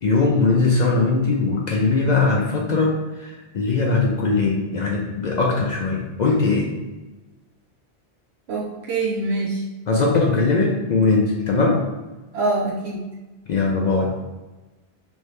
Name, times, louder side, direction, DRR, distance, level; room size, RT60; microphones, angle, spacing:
voice 1, 0.0-6.7 9.9-11.8 13.5-14.1, left 3 dB, 55° left, -1 dB, 0.5 m, -20 dB
voice 2, 8.5-9.6 12.3-13.0, right 2 dB, 85° right, -4 dB, 0.9 m, -24 dB
3.1 x 2.7 x 3.2 m, 1.2 s
omnidirectional pair, 1.1 m